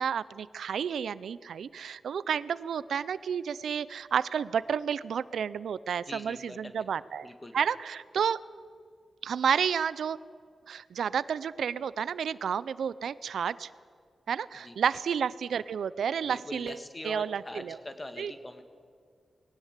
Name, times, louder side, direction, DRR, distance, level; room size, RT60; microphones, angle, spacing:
voice 1, 0.0-7.3 7.5-8.4 9.2-10.2 10.7-13.7 14.3-16.8 17.0-17.8 18.2-18.3, right 7 dB, 90° right, 18 dB, 0.5 m, -31 dB
voice 2, 6.1-6.9 7.2-7.6 14.5-14.8 16.2-18.6, left 1 dB, 15° left, 8 dB, 1.6 m, -43 dB
20.0 x 18.0 x 8.2 m, 2.1 s
wide cardioid pair, 175°, 0 cm